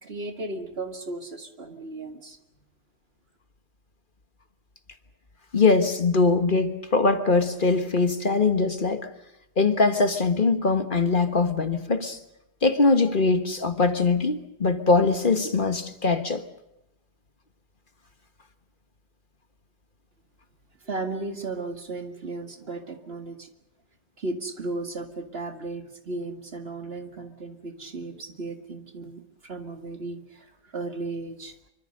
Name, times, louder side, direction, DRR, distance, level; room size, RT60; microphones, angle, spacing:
voice 1, 0.0-2.4 20.8-23.5 24.2-31.5, right 2 dB, 55° right, 2.3 m, -35 dB
voice 2, 5.5-9.1 9.6-12.2 12.6-16.4, left 3 dB, 45° left, 1.6 m, -22 dB
26.0 x 24.5 x 6.6 m
omnidirectional pair, 1.2 m